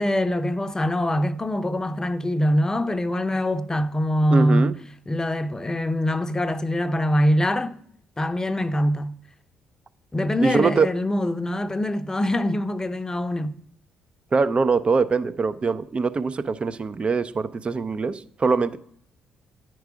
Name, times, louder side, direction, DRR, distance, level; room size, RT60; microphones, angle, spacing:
voice 1, 0.0-4.8 5.1-7.8 8.2-9.1 10.1-13.5, left 1 dB, 20° left, 0.6 m, -23 dB
voice 2, 4.3-4.7 10.4-10.9 14.3-18.8, right 4 dB, 35° right, 0.5 m, -23 dB
9.5 x 4.7 x 5.0 m
hypercardioid pair, 50°, 3 cm